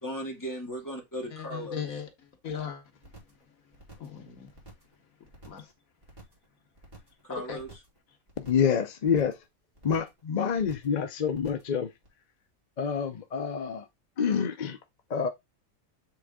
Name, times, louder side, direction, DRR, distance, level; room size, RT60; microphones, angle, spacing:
voice 1, 0.0-1.8 7.2-7.7, equal, 15° left, 2.0 m, -37 dB
voice 2, 1.3-3.1 3.6-4.5 5.4-5.7 7.3-7.6, left 7 dB, 75° left, 1.6 m, -39 dB
sound 1, 3.0-3.4 3.7-4.2 4.5-4.9 5.2-5.7 6.0-6.5 6.8-7.2 7.5-8.0 8.3-8.7 9.0-9.4 9.7-10.2 10.5-11.0 11.3-11.7 12.0-12.1, right 2 dB, 45° right, 2.6 m, -51 dB
voice 3, 8.4-9.4 9.8-11.9 12.8-13.9 14.2-14.8 15.1-15.3, left 7 dB, 50° left, 0.5 m, -27 dB
7.8 x 3.6 x 3.5 m
omnidirectional pair, 1.4 m